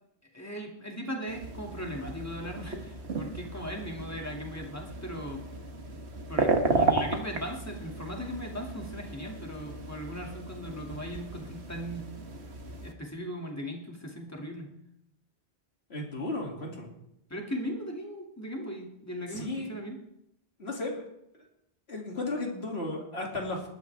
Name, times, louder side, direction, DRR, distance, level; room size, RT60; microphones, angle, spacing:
voice 1, 0.3-5.4 6.3-12.2 12.8-14.7 17.3-20.0, equal, 15° left, 0 dB, 2.3 m, -38 dB
sound 1, 1.3-12.9, right 3 dB, 80° right, 1.6 m, -34 dB
voice 2, 15.9-16.9 19.3-19.7 20.6-21.0 21.3-21.5 21.9-23.7, left 2 dB, 75° left, 0 dB, 2.9 m, -34 dB
20.5 x 12.5 x 3.4 m, 0.79 s
omnidirectional pair, 1.1 m